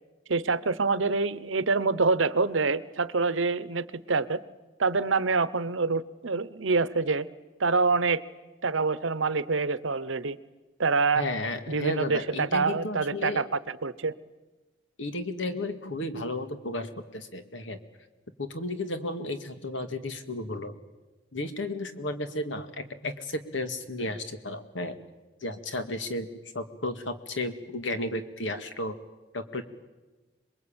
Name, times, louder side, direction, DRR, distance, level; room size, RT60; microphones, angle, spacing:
voice 1, 0.3-4.4 4.8-7.3 7.6-8.2 8.6-10.4 10.8-11.2 11.7-13.5 13.8-14.1, right 4 dB, 80° right, 16 dB, 1.0 m, -26 dB
voice 2, 11.2-13.4 15.0-17.8 18.4-20.8 21.3-25.0 25.4-29.0 29.3-29.6, left 2 dB, 75° left, 8 dB, 2.2 m, -33 dB
27.0 x 22.0 x 8.9 m, 1.2 s
head